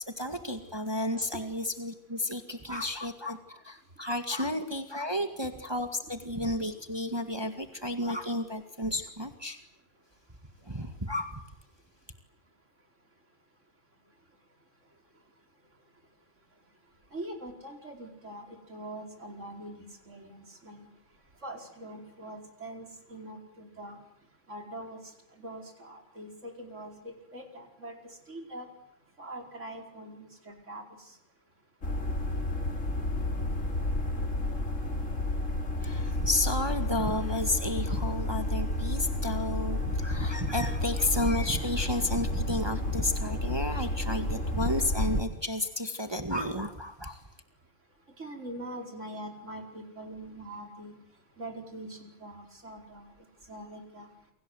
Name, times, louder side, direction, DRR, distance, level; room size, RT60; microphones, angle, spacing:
voice 1, 0.2-9.6 10.6-11.4 35.8-47.2, left 1 dB, 20° right, 6 dB, 2.1 m, -32 dB
voice 2, 17.1-20.9 21.4-24.0 24.5-25.0 25.4-28.0 28.3-28.7 29.2-31.1 48.2-50.9 51.4-53.1 53.5-54.1, right 1 dB, 75° right, 2 dB, 5.2 m, -43 dB
sound 1, 31.8-45.2, left 1 dB, 80° left, 3.6 m, -31 dB
29.0 x 25.0 x 8.0 m, 0.82 s
omnidirectional pair, 1.3 m